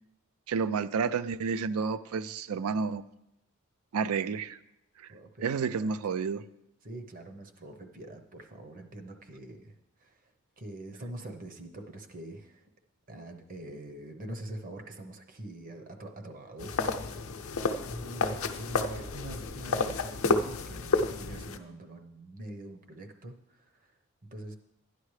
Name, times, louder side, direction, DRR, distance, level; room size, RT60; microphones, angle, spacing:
voice 1, 0.5-3.0 3.9-4.6 5.4-6.4, right 5 dB, 75° right, 16 dB, 0.4 m, -30 dB
voice 2, 5.1-5.9 6.8-12.7 13.1-16.9 17.3-24.5, right 1 dB, 40° right, 5 dB, 0.8 m, -44 dB
sound 1, 16.6-21.6, left 3 dB, 65° left, 0.6 m, -30 dB
12.5 x 10.0 x 3.2 m, 0.84 s
head